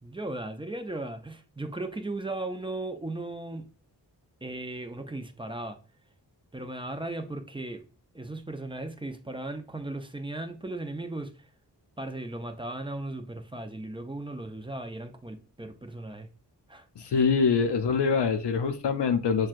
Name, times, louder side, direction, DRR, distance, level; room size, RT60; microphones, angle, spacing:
voice 1, 0.0-3.7 4.4-5.8 6.5-7.9 8.1-11.5 12.0-16.3 16.7-17.3, right 2 dB, 15° right, 0.4 m, -37 dB
voice 2, 17.0-19.5, left 5 dB, 75° left, 0.5 m, -24 dB
5.9 x 2.2 x 2.4 m
wide cardioid pair, 60°, 42 cm